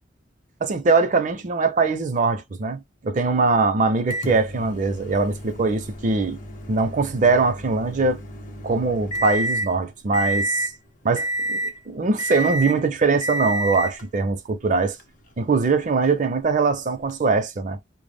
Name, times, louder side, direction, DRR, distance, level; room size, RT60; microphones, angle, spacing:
voice 1, 0.6-6.4 6.7-8.2 8.6-10.7 11.0-15.0 15.4-17.8, right 4 dB, 40° right, 0.5 m, -22 dB
Microwave oven, 4.1-9.7 10.1-10.8 11.2-11.8 12.2-12.8 13.2-14.0 15.0-15.1 17.1-17.2, right 1 dB, 45° left, 0.7 m, -29 dB
2.0 x 2.0 x 3.3 m
head